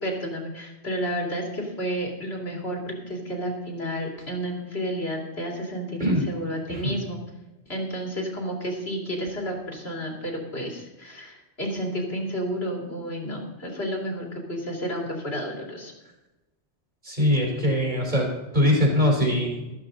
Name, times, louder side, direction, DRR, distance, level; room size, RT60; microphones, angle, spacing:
voice 1, 0.0-7.2 7.7-15.9, equal, 60° left, 0 dB, 3.2 m, -31 dB
voice 2, 6.0-6.3 6.7-7.0 17.0-18.3 18.5-19.7, left 1 dB, 40° right, -1 dB, 4.0 m, -22 dB
14.0 x 12.5 x 4.0 m, 1.0 s
omnidirectional pair, 1.2 m